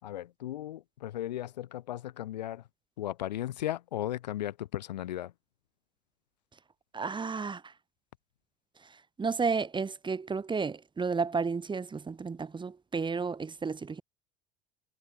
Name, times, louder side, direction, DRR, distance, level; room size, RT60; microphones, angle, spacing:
voice 1, 0.0-2.6 3.0-5.3, left 13 dB, 80° left, 6.1 m, -36 dB
voice 2, 6.9-7.6 9.2-14.0, right 5 dB, 20° right, 2.1 m, -32 dB
hypercardioid pair, 75°, 21 cm